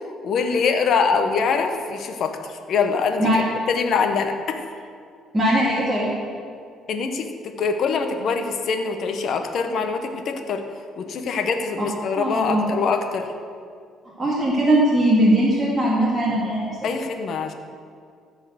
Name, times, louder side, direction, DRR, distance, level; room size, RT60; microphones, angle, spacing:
voice 1, 0.2-4.6 6.9-10.6 11.0-13.3 16.8-17.5, left 5 dB, 55° left, 6 dB, 1.0 m, -24 dB
voice 2, 5.3-6.1 12.2-12.7 14.2-16.7, right 1 dB, 15° right, -7 dB, 2.2 m, -20 dB
13.5 x 4.6 x 8.0 m, 2.2 s
cardioid pair, 120°, 0 cm